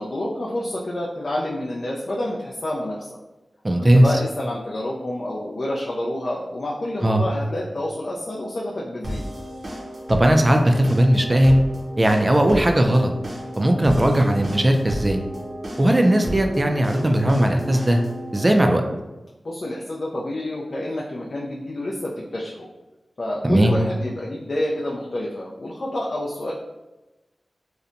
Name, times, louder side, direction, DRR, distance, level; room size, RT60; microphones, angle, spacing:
voice 1, 0.0-3.2 3.8-9.2 19.4-22.7 23.2-26.5, left 1 dB, 55° left, -4 dB, 0.4 m, -28 dB
voice 2, 3.6-4.0 7.0-7.2 10.1-11.6 12.0-13.1 13.6-15.2 15.8-18.0 18.3-18.8 23.4-23.8, right 1 dB, 30° right, 4 dB, 0.3 m, -17 dB
sound 1, 9.0-18.6, equal, 60° right, 0.6 m, -33 dB
2.7 x 2.1 x 2.5 m, 1.1 s
wide cardioid pair, 65°, 0 cm